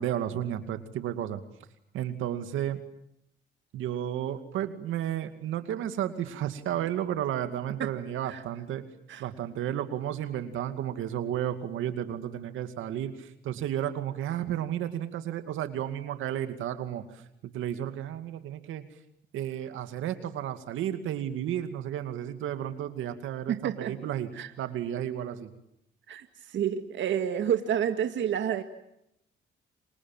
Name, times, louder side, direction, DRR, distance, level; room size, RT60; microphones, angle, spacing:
voice 1, 0.0-1.4 1.9-2.8 3.7-8.8 9.2-18.8 19.3-24.3 24.6-25.5, right 11 dB, 85° right, 9 dB, 2.4 m, -32 dB
voice 2, 23.5-24.0 24.3-24.5 26.1-28.6, right 9 dB, 70° right, 7 dB, 2.1 m, -29 dB
29.5 x 26.0 x 7.4 m, 0.79 s
cardioid pair, 90°, 20 cm